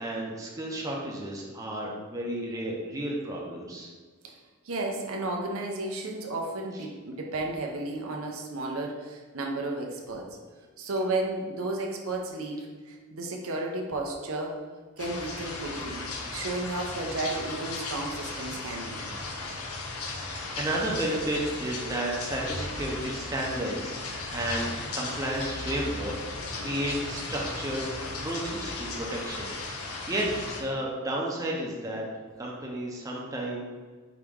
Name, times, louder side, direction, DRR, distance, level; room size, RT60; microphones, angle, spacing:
voice 1, 0.0-3.9 20.2-27.9 28.2-29.5 29.8-30.3 30.6-32.0 32.4-33.7, right 1 dB, 15° right, -3 dB, 0.6 m, -32 dB
voice 2, 4.6-10.3 10.8-14.6 15.0-16.1 16.3-19.1, right 2 dB, 75° right, 1 dB, 0.6 m, -33 dB
sound 1, 15.0-30.6, left 3 dB, 85° left, 0.7 m, -36 dB
4.9 x 2.9 x 3.5 m, 1.5 s
head